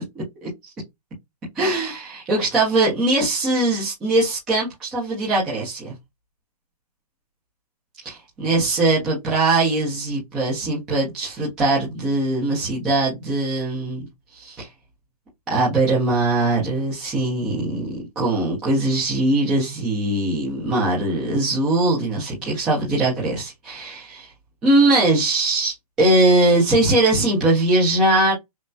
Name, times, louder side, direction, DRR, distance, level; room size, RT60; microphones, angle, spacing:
voice 1, 0.1-0.5 1.6-5.9 8.0-14.7 15.5-24.3 24.6-28.3, right 2 dB, 5° right, 0.3 m, -21 dB
5.3 x 2.1 x 2.5 m
hypercardioid pair, 170°, 20 cm